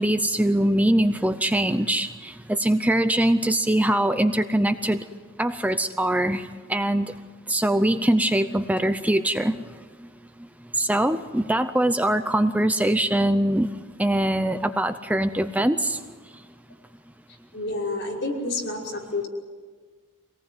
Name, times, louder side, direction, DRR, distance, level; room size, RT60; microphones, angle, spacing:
voice 1, 0.0-5.0 5.4-7.1 7.5-9.7 10.8-13.7 14.0-16.0, right 1 dB, 5° right, 9 dB, 0.6 m, -22 dB
voice 2, 17.5-19.3, left 2 dB, 55° left, -2 dB, 5.6 m, -29 dB
26.0 x 18.5 x 9.4 m, 1.5 s
head